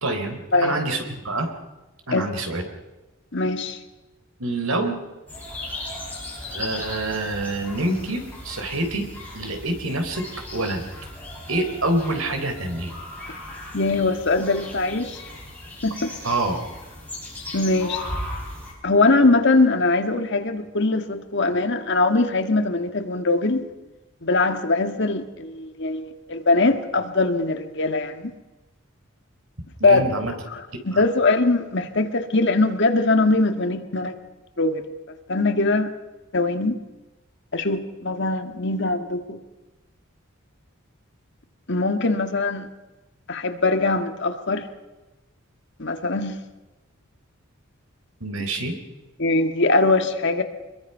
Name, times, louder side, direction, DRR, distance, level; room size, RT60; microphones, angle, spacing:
voice 1, 0.0-1.5 2.1-2.6 4.4-5.0 6.5-9.1 9.3-10.3 10.5-10.8 11.5-12.9 16.2-16.6 29.8-30.3 30.9-31.0 48.2-48.7, right 2 dB, 80° right, 5 dB, 3.7 m, -26 dB
voice 2, 3.3-3.8 13.7-15.2 15.8-16.1 17.5-18.0 18.8-23.7 24.2-28.3 29.8-30.0 30.5-34.1 34.6-34.8 35.3-35.9 36.3-36.8 37.5-39.4 41.7-42.7 43.3-44.7 45.8-46.4 49.2-50.4, left 3 dB, 55° left, 7 dB, 1.7 m, -21 dB
sound 1, 5.3-18.7, left 1 dB, 10° left, 7.3 m, -37 dB
25.0 x 22.0 x 5.7 m, 1.1 s
head